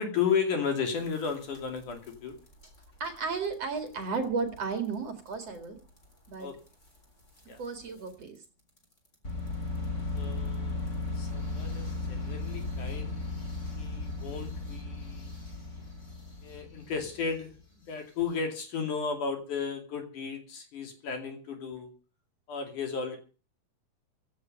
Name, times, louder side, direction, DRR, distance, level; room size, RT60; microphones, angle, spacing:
voice 1, 0.0-2.4 6.4-6.6 7.5-7.6 10.1-10.8 11.1-13.2 13.8-15.3 16.4-17.6 17.9-21.9 22.5-23.2, left 6 dB, 55° left, 5 dB, 4.0 m, -34 dB
sound 1, 1.0-2.1 2.5-2.7 3.0-3.2 3.5-3.6 3.9-4.0 4.6-4.7 5.4-5.5 6.0-6.1 7.4-7.5 8.1-8.2 9.2-17.5, left 3 dB, 20° left, 4.0 m, -36 dB
voice 2, 3.0-5.8 6.3-6.5 7.6-8.4, right 4 dB, 45° right, 6 dB, 3.0 m, -33 dB
16.0 x 9.7 x 6.5 m, 0.37 s
omnidirectional pair, 4.3 m